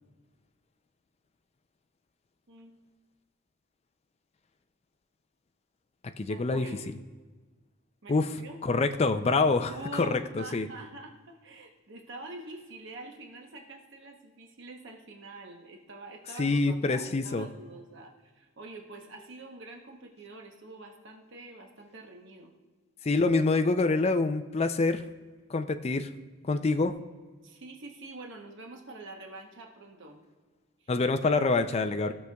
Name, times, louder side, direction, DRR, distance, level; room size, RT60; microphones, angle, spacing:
voice 1, 2.5-2.8 6.3-6.9 8.0-8.6 9.7-22.5 27.4-30.2 30.8-30.9 32.1-32.2, right 2 dB, 60° right, 2 dB, 0.9 m, -46 dB
voice 2, 6.2-6.7 8.1-8.3 8.6-10.7 16.4-17.5 23.0-25.0 25.5-26.1 26.4-27.0 30.9-32.1, left 3 dB, 30° left, 8 dB, 0.4 m, -26 dB
16.5 x 6.5 x 2.3 m, 1.4 s
head